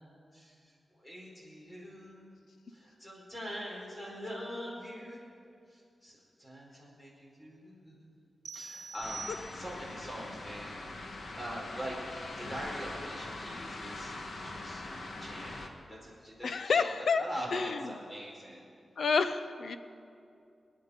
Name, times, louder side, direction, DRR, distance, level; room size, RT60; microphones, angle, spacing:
voice 1, 0.0-2.3 2.7-5.2 5.7-8.2 8.5-14.1 14.4-14.8 15.2-18.7, equal, 15° left, -3 dB, 4.9 m, -43 dB
sound 1, 8.5-10.0, right 4 dB, 70° right, 1.4 m, -44 dB
sound 2, 9.0-15.7, left 2 dB, 55° left, 1.5 m, -42 dB
voice 2, 16.4-17.2 17.5-17.8 19.0-19.8, left 5 dB, 75° left, 10 dB, 0.8 m, -29 dB
27.0 x 10.0 x 5.2 m, 2.5 s
wide cardioid pair, 145°, 0 cm